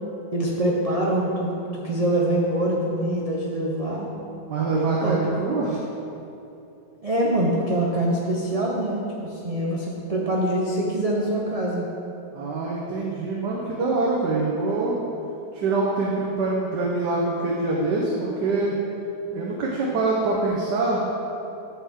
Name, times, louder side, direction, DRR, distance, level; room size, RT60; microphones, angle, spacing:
voice 1, 0.3-4.1 4.7-5.2 5.7-5.8 7.0-11.9, right 1 dB, 50° right, -4 dB, 0.4 m, -24 dB
voice 2, 4.5-5.7 12.3-15.0 15.5-18.8 19.3-21.0, right 3 dB, 90° right, -3 dB, 1.5 m, -24 dB
8.7 x 7.3 x 3.5 m, 2.9 s
omnidirectional pair, 1.8 m